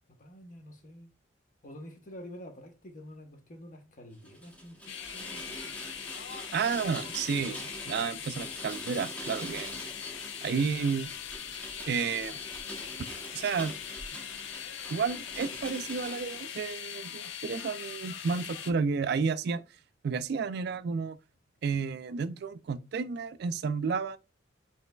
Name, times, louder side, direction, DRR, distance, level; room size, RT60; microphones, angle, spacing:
voice 1, 0.1-1.1 1.6-5.8 6.8-6.9, equal, 45° left, 0.9 m, -48 dB
Rain, 4.2-16.5, right 1 dB, 5° left, 1.0 m, -44 dB
sound 1, 4.9-18.7, left 9 dB, 80° left, 0.5 m, -41 dB
voice 2, 6.5-9.8 10.4-11.1 11.8-12.4 13.3-13.7 14.9-19.6 20.0-21.2 21.6-24.2, right 5 dB, 60° right, 0.3 m, -31 dB
5.4 x 3.1 x 2.2 m
head